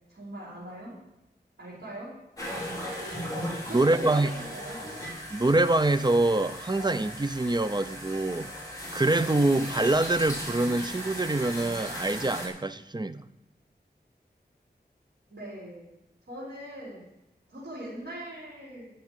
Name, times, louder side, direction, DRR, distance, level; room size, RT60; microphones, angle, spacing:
voice 1, 0.1-0.9 1.6-2.1 3.0-3.3 3.6-4.8 15.3-15.8 16.3-17.0 17.5-18.9, right 1 dB, 80° right, 4.5 m, -41 dB
sound 1, 2.4-12.5, equal, 20° left, 3.7 m, -37 dB
voice 2, 3.7-4.3 5.3-8.5 8.9-13.2, right 2 dB, 25° right, 0.6 m, -25 dB
11.0 x 7.0 x 7.2 m
wide cardioid pair, 65°, 18 cm